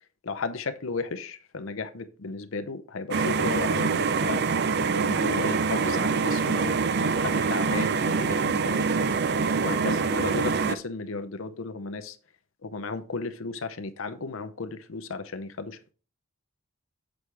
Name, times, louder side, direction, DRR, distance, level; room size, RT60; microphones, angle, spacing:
voice 1, 0.2-4.4 4.9-9.1 9.6-12.2 12.6-15.9, left 4 dB, 75° left, 0.7 m, -34 dB
sound 1, 3.1-10.8, right 5 dB, 50° right, 0.4 m, -25 dB
7.2 x 6.3 x 3.3 m
head